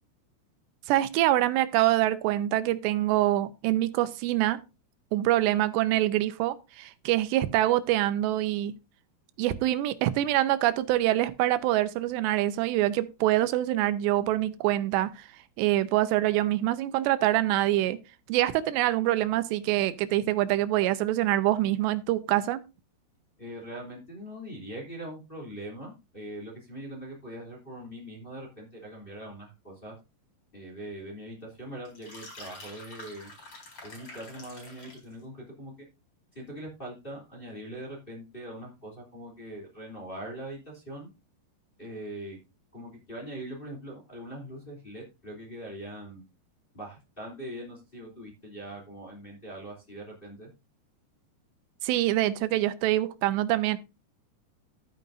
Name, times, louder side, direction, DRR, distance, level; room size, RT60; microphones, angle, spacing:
voice 1, 0.9-4.6 5.1-8.7 9.4-15.3 15.6-18.0 18.3-22.6 51.8-53.8, right 14 dB, 90° right, 2.9 m, -25 dB
voice 2, 23.4-29.9 30.5-33.3 33.8-35.9 36.3-41.1 41.8-42.4 42.7-46.2 46.7-50.5, right 1 dB, 15° left, 2.4 m, -42 dB
sound 1, 31.8-35.1, left 2 dB, 35° left, 5.3 m, -47 dB
12.0 x 9.3 x 2.6 m
omnidirectional pair, 4.9 m